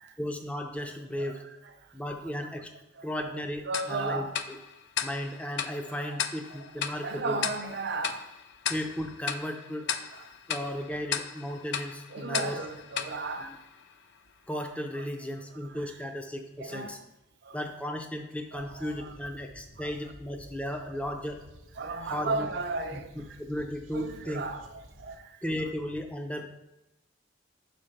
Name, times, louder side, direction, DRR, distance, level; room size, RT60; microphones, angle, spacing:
voice 1, 0.2-1.4 1.9-2.7 3.0-4.6 5.0-7.4 8.7-9.9 10.5-12.6 13.4-13.6 14.5-17.0 17.5-21.4 22.0-22.5 22.9-24.4 25.4-26.5, equal, 5° left, 0.5 m, -35 dB
Tick-tock, 3.7-14.2, left 8 dB, 60° left, 0.4 m, -36 dB
voice 2, 3.7-4.3 6.0-6.2 7.0-8.3 10.1-10.3 10.6-10.7 12.1-13.5 16.6-17.0 17.4-17.6 18.5-19.2 19.8-19.9 21.8-23.1 23.9-24.7 25.0-25.4, right 3 dB, 55° right, 0.6 m, -35 dB
sound 1, 18.5-25.2, right 1 dB, 85° right, 0.8 m, -53 dB
5.6 x 4.3 x 5.1 m
head